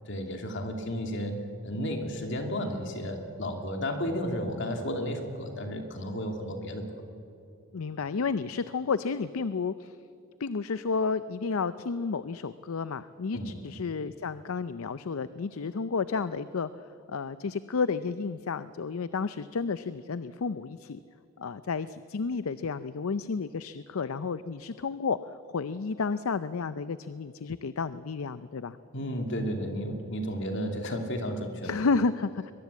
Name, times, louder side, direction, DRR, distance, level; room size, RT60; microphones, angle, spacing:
voice 1, 0.1-1.4 1.6-7.0 13.3-13.6 28.9-31.7, equal, 55° left, 4 dB, 2.8 m, -33 dB
voice 2, 7.7-10.0 10.4-21.0 21.4-28.8 31.6-32.5, left 4 dB, 75° left, 14 dB, 0.5 m, -31 dB
22.0 x 21.5 x 8.3 m, 2.6 s
head